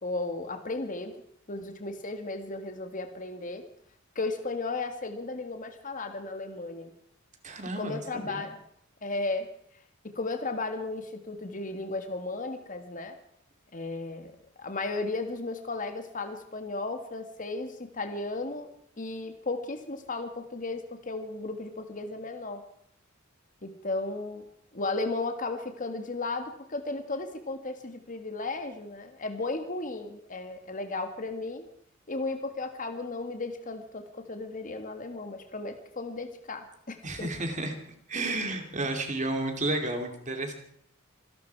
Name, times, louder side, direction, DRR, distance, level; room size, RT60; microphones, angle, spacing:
voice 1, 0.0-1.1 1.5-3.6 4.2-6.9 7.8-8.6 9.0-9.5 10.2-13.2 13.7-14.3 14.6-22.6 23.6-24.5 24.7-31.6 32.1-37.3, left 3 dB, 40° left, 6 dB, 1.8 m, -35 dB
voice 2, 7.4-8.4 37.0-37.8 38.1-40.5, right 2 dB, 35° right, 5 dB, 2.6 m, -32 dB
26.5 x 11.5 x 4.7 m, 0.66 s
head